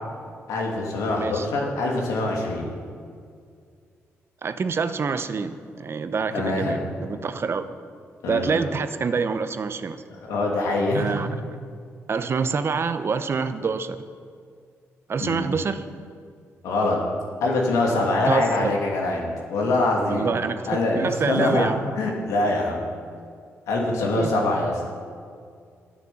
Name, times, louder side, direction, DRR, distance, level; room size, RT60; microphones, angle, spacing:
voice 1, 0.5-2.7 6.3-6.8 8.2-8.5 10.3-11.1 15.2-15.5 16.6-17.0 17.4-20.3 20.7-21.7 22.0-22.9 23.7-24.7, left 2 dB, 85° left, -1 dB, 2.5 m, -24 dB
voice 2, 1.2-1.5 4.4-7.7 8.2-10.0 10.9-11.3 12.1-14.0 15.1-15.9 18.3-18.7 20.1-21.8 24.1-24.3, right 5 dB, 50° right, 11 dB, 0.8 m, -26 dB
11.0 x 9.4 x 7.1 m, 2.2 s
cardioid pair, 65°, 5 cm